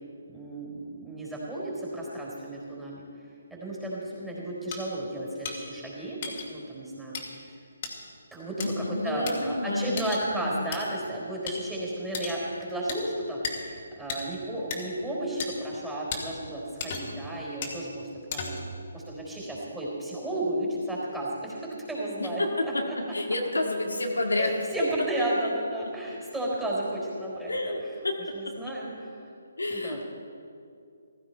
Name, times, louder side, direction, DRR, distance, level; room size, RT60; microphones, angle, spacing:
voice 1, 0.3-3.0 3.5-6.2 6.5-7.6 8.3-18.6 18.9-22.4 22.9-23.0 24.3-27.7 28.3-29.3 29.7-30.0, right 1 dB, 5° right, -5 dB, 4.0 m, -33 dB
sound 1, 4.7-4.8 5.4-5.6 6.2-6.5 7.1-7.2 7.8-7.9 8.6-8.7 9.3-9.4 10.0-10.2 10.7-10.8 11.5-11.6 12.1-12.4 12.9-13.0 13.4-13.6 14.1-14.2 14.7-14.8 15.4-15.5 16.1-16.2 16.8-17.2 17.6-17.8 18.3-18.7, left 5 dB, 40° left, 2.5 m, -34 dB
voice 2, 8.6-10.0 10.3-10.7 22.2-24.5 27.5-28.5 29.6-30.0, left 2 dB, 85° left, 1 dB, 1.9 m, -30 dB
15.5 x 15.0 x 4.5 m, 2.5 s
figure-of-eight pair, 145°, 0 cm